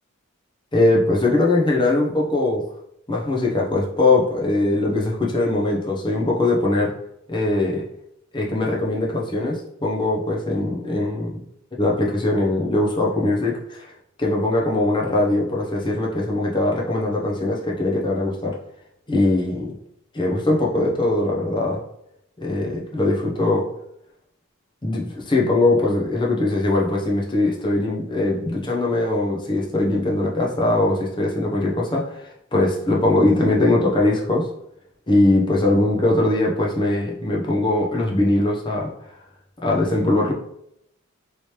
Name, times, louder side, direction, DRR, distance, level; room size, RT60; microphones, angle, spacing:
voice 1, 0.7-2.6 3.1-6.9 7.3-7.8 8.3-11.4 11.8-13.9 14.2-18.6 19.1-19.7 20.1-21.8 22.4-23.6 24.8-34.5 35.1-38.9 39.6-40.3, left 2 dB, 20° left, -2 dB, 0.6 m, -21 dB
3.2 x 3.0 x 2.8 m, 0.77 s
head